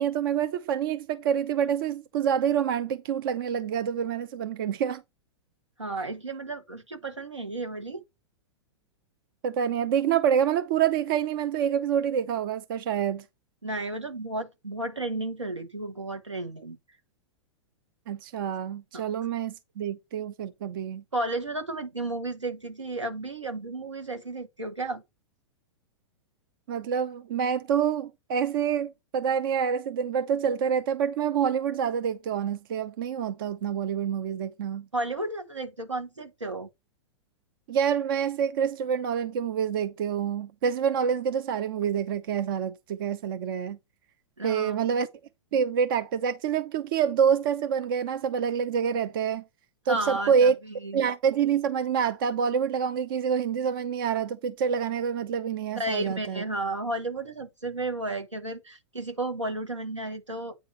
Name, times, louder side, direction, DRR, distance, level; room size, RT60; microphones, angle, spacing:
voice 1, 0.0-5.0 9.4-13.2 18.1-21.0 26.7-34.9 37.7-43.8 44.4-45.1 45.5-49.4 49.9-50.5 50.9-56.4, right 7 dB, 50° right, 0.7 m, -27 dB
voice 2, 5.8-8.0 13.6-16.8 18.9-19.0 21.1-25.0 34.9-36.7 44.4-44.8 49.9-51.0 55.7-60.6, right 2 dB, 85° right, 1.5 m, -33 dB
9.0 x 3.8 x 5.2 m
figure-of-eight pair, 100°, 15 cm